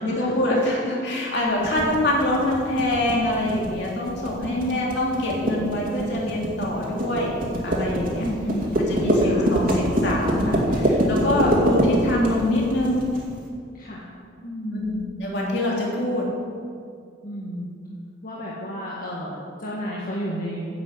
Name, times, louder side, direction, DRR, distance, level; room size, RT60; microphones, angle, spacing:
voice 1, 0.0-7.4 7.6-8.2 8.9-13.1 14.7-16.2, left 1 dB, 60° left, -4 dB, 3.1 m, -25 dB
sound 1, 1.6-13.2, equal, 50° right, 2.4 m, -24 dB
voice 2, 4.4-5.0 8.2-8.8 9.2-9.5 11.1-11.6 13.7-14.0 14.4-15.1 17.2-17.7 18.2-20.7, equal, 45° left, -6 dB, 1.8 m, -32 dB
10.0 x 7.9 x 8.3 m, 2.3 s
head